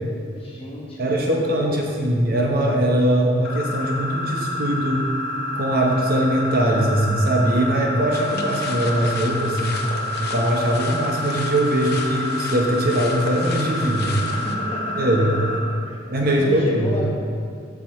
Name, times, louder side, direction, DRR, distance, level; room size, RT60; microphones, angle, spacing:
voice 1, 0.4-1.9 14.0-16.0 16.2-17.1, equal, 30° left, -3 dB, 1.2 m, -33 dB
voice 2, 1.0-5.0 5.5-9.8 10.2-14.1 15.0-15.3 16.1-16.9, right 1 dB, 50° right, 0 dB, 1.0 m, -21 dB
sound 1, 3.4-15.6, left 1 dB, 80° left, 1.8 m, -29 dB
sound 2, 8.1-14.5, left 4 dB, 55° left, 0.6 m, -35 dB
7.7 x 6.1 x 4.3 m, 2.2 s
head